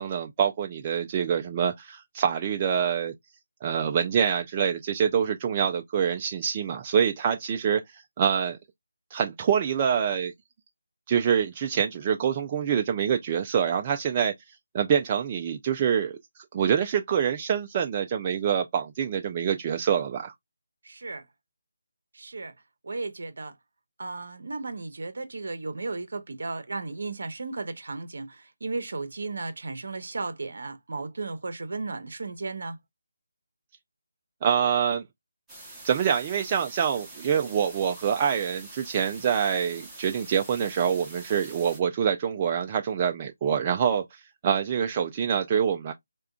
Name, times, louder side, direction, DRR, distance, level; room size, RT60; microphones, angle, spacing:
voice 1, 0.0-3.1 3.6-8.6 9.1-10.3 11.1-14.3 14.7-16.2 16.5-20.3 34.4-35.0 35.8-45.9, right 8 dB, 25° right, 0.3 m, -26 dB
voice 2, 20.8-21.2 22.1-22.5 22.8-23.5 24.0-32.8, right 3 dB, 65° right, 0.7 m, -35 dB
sound 1, 35.5-41.8, right 2 dB, 5° right, 0.9 m, -45 dB
3.5 x 2.2 x 2.3 m
figure-of-eight pair, 160°, 0 cm